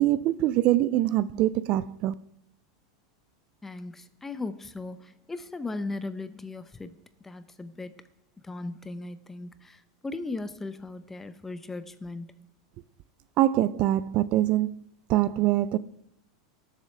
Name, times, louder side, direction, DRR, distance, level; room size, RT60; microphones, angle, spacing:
voice 1, 0.0-2.1 13.4-14.8 15.1-15.8, right 14 dB, 45° right, 0.4 m, -24 dB
voice 2, 3.6-7.0 7.2-8.1 8.4-12.5, left 3 dB, 10° left, 0.7 m, -37 dB
18.0 x 7.4 x 3.3 m
supercardioid pair, 135°, 3 cm